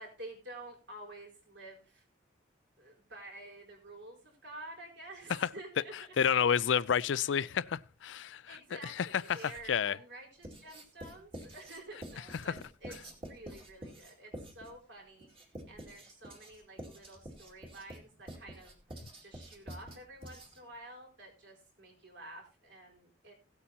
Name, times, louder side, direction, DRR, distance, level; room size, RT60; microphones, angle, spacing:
voice 1, 0.0-2.1 2.8-5.9 6.2-6.6 8.5-23.3, right 2 dB, 65° right, 4.4 m, -50 dB
voice 2, 6.2-10.0 12.5-12.6, left 7 dB, 75° left, 0.4 m, -30 dB
Writing, 9.1-9.8 10.4-20.8, right 1 dB, 30° right, 2.3 m, -48 dB
17.0 x 8.4 x 2.9 m
head